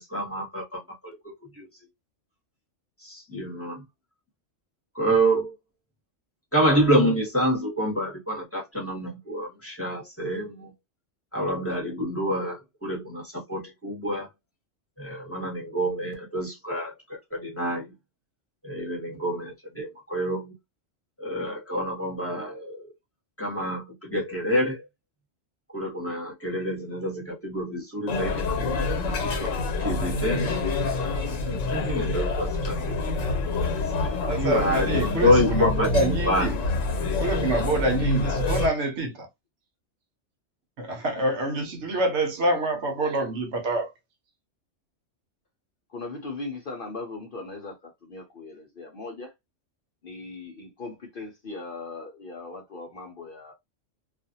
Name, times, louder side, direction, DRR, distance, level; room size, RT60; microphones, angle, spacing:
voice 1, 0.0-1.7 3.0-3.8 4.9-5.5 6.5-10.7 11.3-14.3 15.0-17.9 18.6-20.5 21.2-22.9 23.4-24.9 25.7-29.5 29.8-30.5 31.4-33.3 34.0-36.5 37.6-37.8, equal, 10° left, 1.0 m, -27 dB
sound 1, 28.1-38.7, left 3 dB, 80° left, 1.2 m, -27 dB
voice 2, 34.3-36.6 37.0-39.3 40.8-43.9, right 2 dB, 65° right, 1.0 m, -26 dB
voice 3, 45.9-49.3 50.0-53.5, left 3 dB, 50° left, 0.7 m, -39 dB
2.5 x 2.4 x 2.7 m
omnidirectional pair, 1.3 m